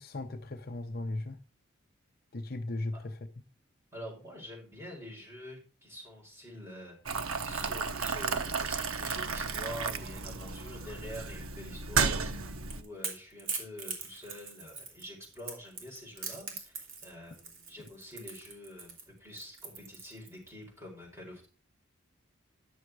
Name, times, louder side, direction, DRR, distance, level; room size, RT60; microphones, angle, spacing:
voice 1, 0.0-1.4 2.3-3.2, left 2 dB, 45° left, 0.7 m, -37 dB
voice 2, 3.9-7.2 7.4-21.5, equal, 10° right, 4.7 m, -47 dB
Boiling, 7.1-12.8, right 5 dB, 85° right, 1.0 m, -33 dB
Crackle / Crack, 12.3-20.5, right 5 dB, 70° right, 3.1 m, -42 dB
11.0 x 6.5 x 4.7 m
head